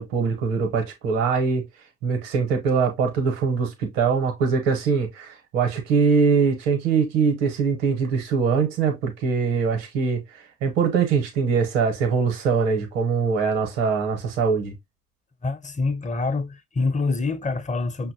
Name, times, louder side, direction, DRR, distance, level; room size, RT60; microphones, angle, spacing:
voice 1, 0.0-1.6 2.0-14.7, right 5 dB, 80° right, 0.8 m, -22 dB
voice 2, 15.4-18.1, left 3 dB, 25° left, 0.7 m, -26 dB
5.6 x 2.1 x 2.6 m
hypercardioid pair, 45°, 29 cm